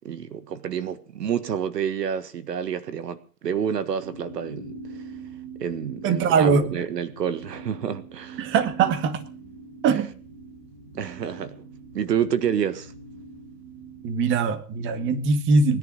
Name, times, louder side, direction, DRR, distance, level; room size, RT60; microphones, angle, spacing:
voice 1, 0.0-5.0 5.6-8.5 9.9-10.0 10.9-11.6 11.9-12.9, right 8 dB, 80° right, 1.7 m, -29 dB
sound 1, 4.0-14.0, right 3 dB, 45° right, 5.3 m, -42 dB
voice 2, 6.0-6.6 8.4-9.2 9.8-10.1 14.0-15.8, right 5 dB, 25° right, 2.0 m, -21 dB
20.0 x 10.5 x 6.5 m
hypercardioid pair, 135°, 48 cm